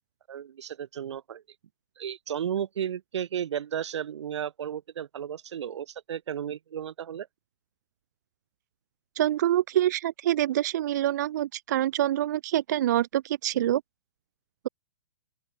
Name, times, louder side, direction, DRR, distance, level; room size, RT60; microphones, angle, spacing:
voice 1, 0.3-1.4 2.0-7.3, right 9 dB, 70° right, 0.7 m, -34 dB
voice 2, 9.2-13.8, right 12 dB, 40° right, 0.4 m, -26 dB
open air
hypercardioid pair, 165°, 15 cm